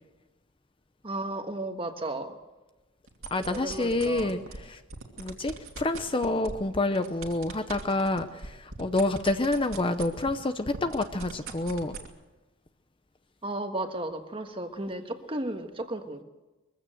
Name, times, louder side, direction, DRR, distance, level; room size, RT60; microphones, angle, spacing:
voice 1, 1.0-2.4 3.4-4.3 13.4-16.2, right 1 dB, 25° right, 6 dB, 1.5 m, -34 dB
sound 1, 3.1-4.6 4.9-10.4 10.6-12.1, right 3 dB, 60° right, 2.6 m, -40 dB
voice 2, 3.3-4.8 5.2-12.0, left 2 dB, 25° left, 9 dB, 0.7 m, -28 dB
22.5 x 15.5 x 7.8 m, 1.1 s
head